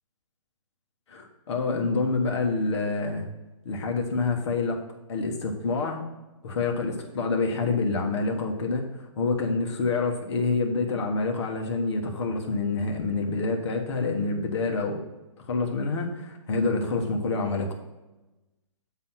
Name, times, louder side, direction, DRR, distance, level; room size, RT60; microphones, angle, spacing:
voice 1, 1.1-3.3 3.6-4.8 5.1-6.0 6.4-15.0 15.4-17.8, left 3 dB, 55° left, 2 dB, 1.5 m, -27 dB
9.0 x 4.1 x 5.7 m, 1.0 s
hypercardioid pair, 155°, 17 cm